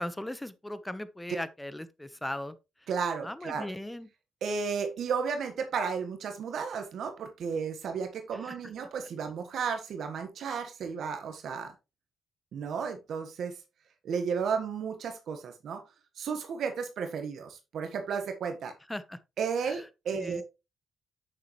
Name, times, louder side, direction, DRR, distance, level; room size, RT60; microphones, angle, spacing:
voice 1, 0.0-2.5 3.2-4.1 8.4-8.5 18.9-19.2 19.7-19.8 20.1-20.4, left 1 dB, 10° left, 1.0 m, -38 dB
voice 2, 2.9-3.7 4.4-11.7 12.5-13.5 14.0-15.8 16.2-18.7 19.4-20.4, right 6 dB, 65° right, 1.4 m, -33 dB
8.7 x 6.7 x 3.1 m
supercardioid pair, 65°, 0 cm